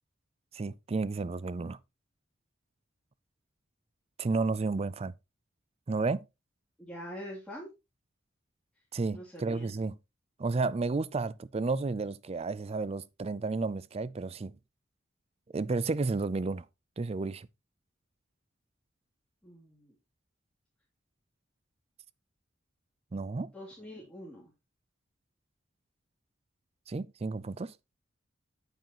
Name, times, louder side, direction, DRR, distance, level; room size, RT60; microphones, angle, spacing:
voice 1, 0.5-1.8 4.2-5.1 5.9-6.2 8.9-10.0 10.4-14.5 15.5-16.6 17.0-17.5 23.1-23.5 26.9-27.7, right 3 dB, 30° right, 0.4 m, -32 dB
voice 2, 6.8-7.7 9.1-9.7 19.4-19.9 23.5-24.5, equal, 5° left, 2.7 m, -44 dB
9.0 x 8.2 x 3.0 m
head